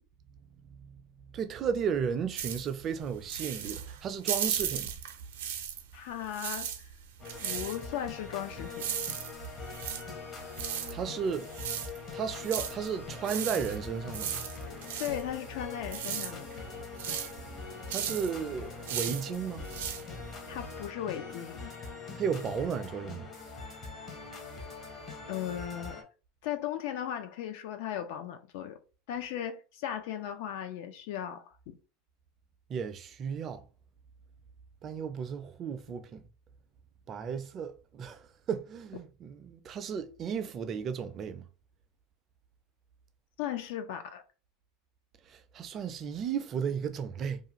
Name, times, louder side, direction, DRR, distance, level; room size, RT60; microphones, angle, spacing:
voice 1, 1.3-4.9 10.9-11.5 12.1-14.3 17.9-19.6 22.1-23.3 32.7-33.6 34.8-36.2 37.1-38.2 38.5-41.4 45.3-47.4, right 7 dB, 30° right, 0.4 m, -34 dB
sound 1, 2.4-6.0 6.2-20.9, right 9 dB, 85° right, 0.5 m, -37 dB
voice 2, 5.9-6.9 7.4-8.9 15.0-16.6 20.5-21.7 25.3-26.0 26.4-28.8 29.1-31.8 43.4-44.2, left 10 dB, 70° left, 0.4 m, -37 dB
sound 2, 7.2-26.0, left 4 dB, 30° left, 0.7 m, -43 dB
2.4 x 2.4 x 2.9 m
supercardioid pair, 140°, 0 cm